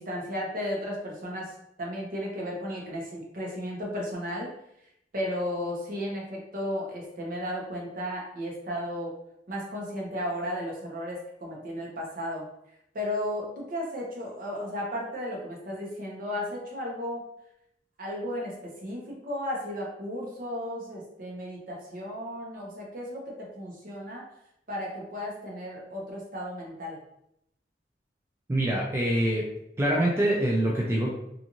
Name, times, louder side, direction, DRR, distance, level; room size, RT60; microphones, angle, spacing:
voice 1, 0.0-4.5 5.1-9.1 9.5-12.5 12.9-17.3 18.0-24.2 24.7-27.0, equal, 50° right, -2 dB, 0.8 m, -34 dB
voice 2, 28.5-29.4 29.8-31.1, right 1 dB, 15° right, -3 dB, 0.3 m, -25 dB
2.5 x 2.5 x 2.9 m, 0.79 s
head